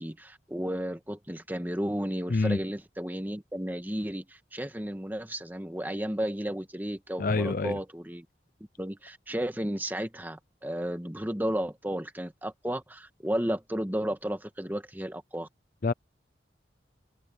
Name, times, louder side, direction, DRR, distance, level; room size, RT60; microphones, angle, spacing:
voice 1, 0.0-8.2 8.8-15.5, equal, 10° right, 1.7 m, -33 dB
voice 2, 7.2-7.8 15.8-15.9, left 3 dB, 50° left, 0.5 m, -26 dB
head